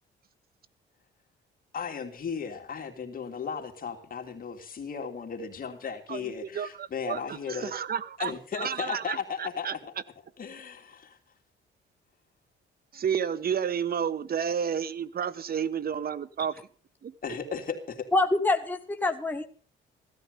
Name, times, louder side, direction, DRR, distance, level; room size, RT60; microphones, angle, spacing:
voice 1, 1.7-7.7 8.2-9.9 10.4-11.2 17.2-18.1, left 6 dB, 45° left, 4 dB, 3.0 m, -36 dB
voice 2, 6.5-9.7 12.9-16.5 17.0-17.1, right 7 dB, 50° right, 18 dB, 1.2 m, -31 dB
voice 3, 18.1-19.4, left 2 dB, 10° left, 5 dB, 1.4 m, -25 dB
16.0 x 13.5 x 5.3 m, 0.41 s
cardioid pair, 90°, 20 cm